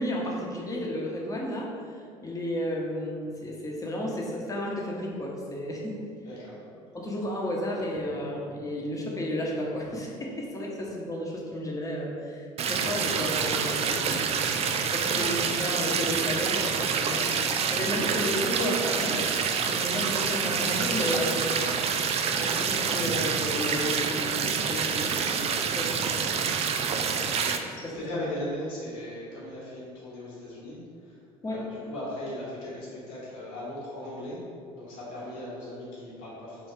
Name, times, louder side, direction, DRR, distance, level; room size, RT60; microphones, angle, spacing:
voice 1, 0.0-6.0 6.9-14.3 14.8-17.3 17.7-19.3 19.6-21.8 22.3-26.5 27.6-28.3 31.4-31.7, left 1 dB, 20° left, -2 dB, 0.9 m, -33 dB
voice 2, 6.2-6.6 17.0-17.7 27.8-31.2 31.4-34.4 34.7-36.7, left 1 dB, 70° left, -7 dB, 1.4 m, -38 dB
sound 1, 12.6-27.6, right 6 dB, 35° right, 0.3 m, -27 dB
3.2 x 2.7 x 4.3 m, 2.3 s
hypercardioid pair, 65°, 17 cm